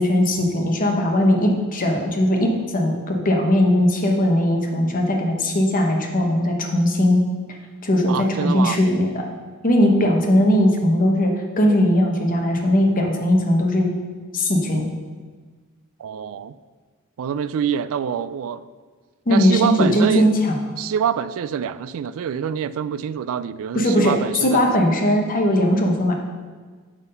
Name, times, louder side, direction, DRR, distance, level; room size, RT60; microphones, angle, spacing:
voice 1, 0.0-7.2 7.8-9.3 9.6-13.9 14.3-14.9 19.3-20.5 23.7-26.1, left 1 dB, 40° left, 1 dB, 1.0 m, -19 dB
voice 2, 8.1-8.8 16.0-16.5 17.2-18.6 19.3-20.3 20.8-24.6, right 8 dB, 65° right, 15 dB, 0.3 m, -25 dB
6.1 x 5.6 x 5.5 m, 1.5 s
head